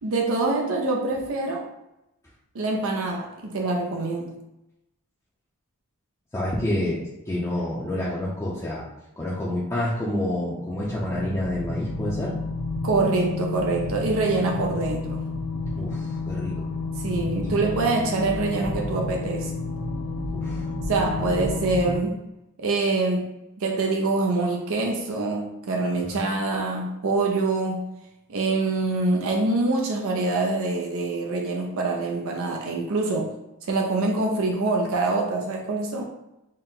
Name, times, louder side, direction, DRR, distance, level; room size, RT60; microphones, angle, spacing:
voice 1, 0.0-1.6 2.5-4.4 12.8-15.3 17.0-19.5 20.9-22.2 22.6-23.3 23.6-27.9 28.3-33.3 33.7-36.0, right 3 dB, 65° right, 1 dB, 0.5 m, -25 dB
voice 2, 6.3-7.0 7.3-8.9 9.2-12.3 15.8-16.7 17.4-17.5 20.3-20.7 26.1-26.3, left 1 dB, 15° left, -7 dB, 0.5 m, -28 dB
sound 1, 10.6-22.0, left 3 dB, 30° right, 1.0 m, -30 dB
4.3 x 2.1 x 3.7 m, 0.91 s
head